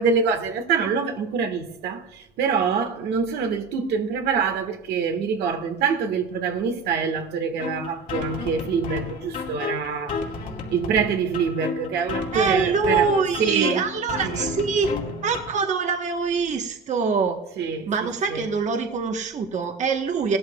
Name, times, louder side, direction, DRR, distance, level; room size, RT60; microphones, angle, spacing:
voice 1, 0.0-10.2 10.7-13.1 13.4-13.9 14.2-14.5 17.6-18.5, right 6 dB, 75° right, 1.5 m, -25 dB
sound 1, 7.6-15.6, left 4 dB, 55° left, 2.2 m, -32 dB
voice 2, 12.3-14.9 15.2-17.4 17.9-20.4, right 5 dB, 45° right, 1.1 m, -24 dB
16.5 x 12.5 x 2.3 m
cardioid pair, 110°, 17 cm